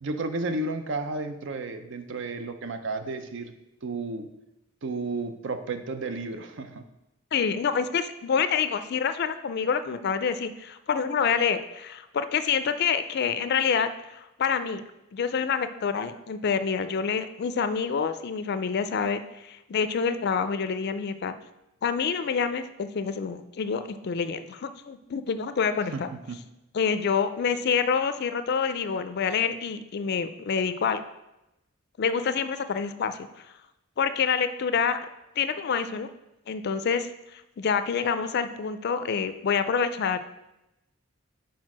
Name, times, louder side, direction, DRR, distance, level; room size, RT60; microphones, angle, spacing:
voice 1, 0.0-3.5 3.8-4.3 4.8-6.9 25.9-26.0 26.3-26.4, right 3 dB, 60° right, 8 dB, 0.6 m, -32 dB
voice 2, 7.3-14.8 15.1-21.3 21.8-26.1 26.7-31.0 32.0-33.3 34.0-35.0 35.4-36.1 36.5-40.2, left 6 dB, 50° left, 11 dB, 0.4 m, -27 dB
4.6 x 4.5 x 6.0 m, 0.91 s
head